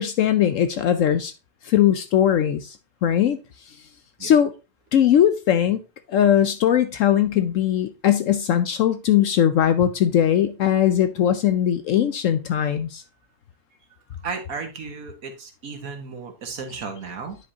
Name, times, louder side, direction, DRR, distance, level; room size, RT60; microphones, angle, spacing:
voice 1, 0.0-1.3 1.6-2.8 3.0-3.4 4.2-4.5 4.9-5.8 6.1-13.0, left 10 dB, 70° left, 0.8 m, -20 dB
voice 2, 14.2-17.4, right 5 dB, 65° right, 1.6 m, -34 dB
9.8 x 5.2 x 2.8 m
omnidirectional pair, 1.7 m